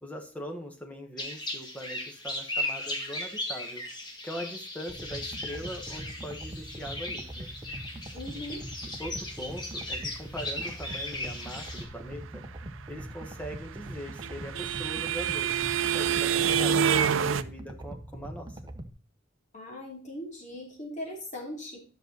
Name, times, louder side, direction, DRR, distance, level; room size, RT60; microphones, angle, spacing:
voice 1, 0.0-3.8 4.2-7.5 8.3-8.4 9.0-12.4 12.9-18.6, equal, 5° left, 3 dB, 1.4 m, -41 dB
sound 1, 1.2-11.9, left 1 dB, 20° left, 2.1 m, -37 dB
sound 2, 4.9-18.9, right 1 dB, 20° right, 0.9 m, -43 dB
voice 2, 8.1-8.6 19.5-21.8, left 1 dB, 40° left, -2 dB, 3.0 m, -39 dB
sound 3, 13.6-17.4, right 8 dB, 85° right, 0.5 m, -26 dB
10.0 x 6.3 x 4.0 m, 0.40 s
head